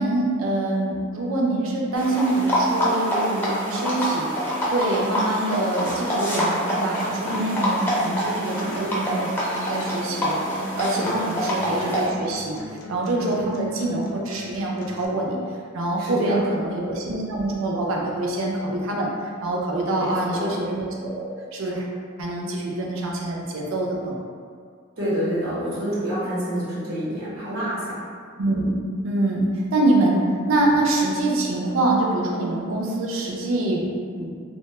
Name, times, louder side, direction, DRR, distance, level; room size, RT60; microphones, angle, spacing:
voice 1, 0.0-9.3 9.7-15.4 15.7-21.8 22.2-24.2 28.4-28.8 29.0-34.3, right 2 dB, 70° right, -2 dB, 0.4 m, -25 dB
sound 1, 1.9-12.1, equal, 10° left, 0.5 m, -26 dB
Acoustic guitar, 7.1-15.1, left 1 dB, 75° left, 0.3 m, -39 dB
voice 2, 10.8-11.1 13.1-13.4 16.0-16.4 19.9-20.6 25.0-28.0, equal, 85° right, -10 dB, 1.0 m, -28 dB
2.1 x 2.0 x 3.0 m, 2.1 s
head